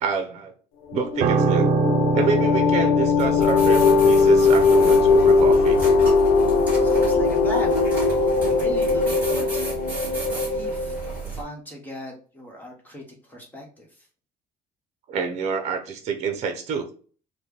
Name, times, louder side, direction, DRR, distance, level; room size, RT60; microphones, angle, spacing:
voice 1, 0.0-0.5 0.9-1.7 2.1-5.8 15.1-16.9, right 5 dB, 50° right, 6 dB, 0.8 m, -27 dB
sound 1, 0.9-11.1, left 4 dB, 90° left, 0.6 m, -19 dB
Piano, 1.2-10.6 10.8-11.1, right 5 dB, 80° right, 0.6 m, -27 dB
sound 2, 3.2-11.4, right 3 dB, 10° right, 2.1 m, -34 dB
voice 2, 6.8-9.8 10.3-11.0 11.3-13.9, equal, 10° left, -1 dB, 1.3 m, -38 dB
4.4 x 2.3 x 3.6 m, 0.40 s
cardioid pair, 150°, 15 cm